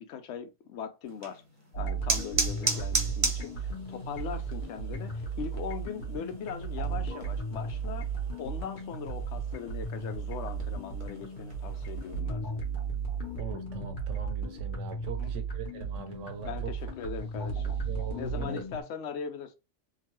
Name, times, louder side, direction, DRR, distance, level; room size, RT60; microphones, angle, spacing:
voice 1, 0.0-1.4 1.8-8.1 8.4-12.6 15.2-15.3 16.4-17.8 18.2-19.5, left 7 dB, 70° left, 0.8 m, -40 dB
sound 1, 1.0-12.2, right 3 dB, 35° right, 0.6 m, -37 dB
sound 2, 1.7-18.8, right 4 dB, 45° left, 1.0 m, -35 dB
voice 2, 13.4-16.7 17.8-18.6, right 4 dB, 70° right, 0.9 m, -41 dB
2.9 x 2.2 x 2.9 m
omnidirectional pair, 1.3 m